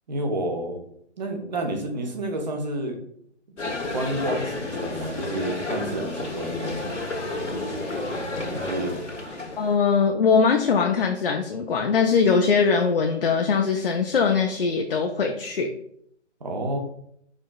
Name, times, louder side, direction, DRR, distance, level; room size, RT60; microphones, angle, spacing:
voice 1, 0.1-0.8 1.2-3.0 3.6-6.9 8.5-8.9 16.4-16.8, right 1 dB, 35° right, 4 dB, 0.8 m, -30 dB
sound 1, 3.6-9.8, left 2 dB, 85° left, 1.4 m, -31 dB
voice 2, 9.6-15.7, left 5 dB, 50° left, 2 dB, 0.5 m, -21 dB
4.9 x 4.2 x 2.4 m, 0.69 s
hypercardioid pair, 160°, 36 cm